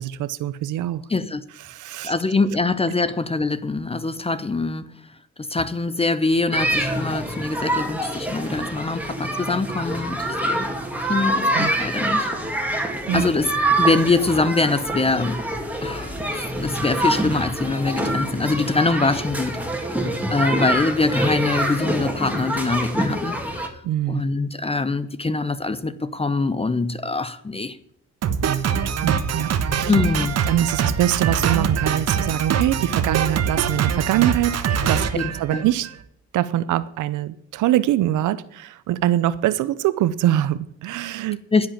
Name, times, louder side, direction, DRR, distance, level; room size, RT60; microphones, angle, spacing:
voice 1, 0.0-1.0 1.7-2.1 11.5-11.7 13.1-13.3 23.8-24.2 28.5-29.5 29.8-29.9 30.5-35.1 35.4-35.9 36.3-41.4, right 13 dB, 80° right, 0.7 m, -23 dB
voice 2, 1.1-1.4 2.0-4.9 5.4-10.7 11.1-12.3 12.8-15.4 15.8-19.6 19.9-23.7 24.1-27.8 29.8-30.4 35.1-35.7 41.5-41.7, left 3 dB, 20° left, 0.7 m, -24 dB
sound 1, 6.5-23.7, right 1 dB, 5° right, 2.4 m, -25 dB
Drum kit, 28.2-36.0, right 7 dB, 60° right, 1.2 m, -23 dB
10.5 x 7.7 x 8.6 m
cardioid pair, 90°, 30 cm